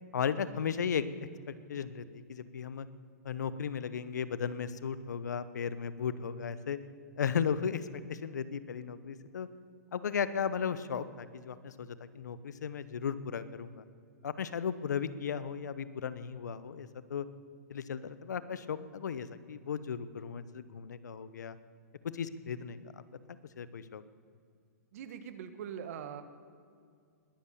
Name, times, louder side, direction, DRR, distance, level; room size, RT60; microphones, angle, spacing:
voice 1, 0.1-1.1 1.5-2.9 3.2-6.8 7.2-9.5 9.9-13.8 14.2-17.3 17.7-21.5 22.1-22.8 23.6-24.0, left 7 dB, 80° left, 15 dB, 0.9 m, -35 dB
voice 2, 24.9-26.2, right 8 dB, 55° right, 10 dB, 1.5 m, -42 dB
20.5 x 8.3 x 6.9 m, 2.3 s
hypercardioid pair, 130°, 9 cm